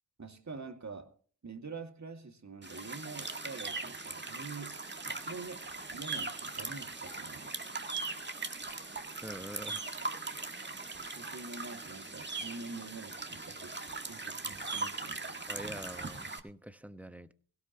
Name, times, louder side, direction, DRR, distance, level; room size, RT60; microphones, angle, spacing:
voice 1, 0.2-1.2 1.4-7.5 11.0-13.8 14.0-15.5, right 4 dB, 40° right, 2.1 m, -46 dB
sound 1, 2.6-16.4, right 3 dB, 25° right, 1.9 m, -40 dB
sound 2, 4.3-16.1, right 7 dB, 65° right, 2.4 m, -56 dB
voice 2, 9.2-9.9 15.5-17.3, right 1 dB, 5° right, 1.2 m, -45 dB
18.0 x 17.0 x 2.9 m
cardioid pair, 45°, 43 cm